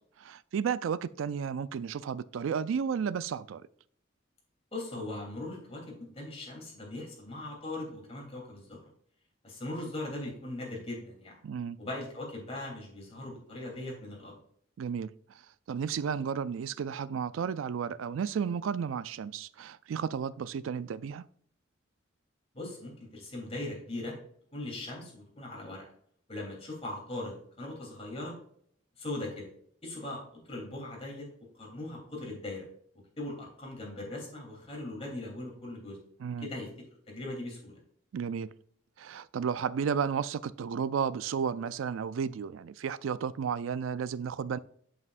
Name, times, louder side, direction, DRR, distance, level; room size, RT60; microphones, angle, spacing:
voice 1, 0.2-3.7 11.4-11.8 14.8-15.4 15.7-21.3 36.2-36.5 38.1-38.5 39.0-44.6, right 7 dB, 80° right, 0.4 m, -33 dB
voice 2, 4.7-8.8 9.4-11.3 11.8-14.4 22.5-24.1 24.5-25.8 26.3-28.3 29.0-29.5 29.8-31.3 31.6-32.7 33.2-36.0 36.4-36.7 37.1-37.8, left 2 dB, 30° left, 3.1 m, -39 dB
8.2 x 7.4 x 2.5 m
head